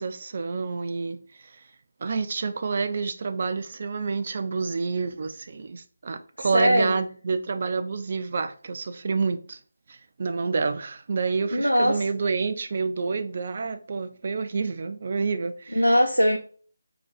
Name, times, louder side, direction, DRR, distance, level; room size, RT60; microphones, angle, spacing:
voice 1, 0.0-1.5 2.0-9.6 9.9-15.8, right 4 dB, 40° right, 0.4 m, -28 dB
voice 2, 6.4-6.9 11.5-12.1 15.7-16.4, equal, 90° right, 0.6 m, -21 dB
3.8 x 3.0 x 4.4 m
figure-of-eight pair, 155°, 0 cm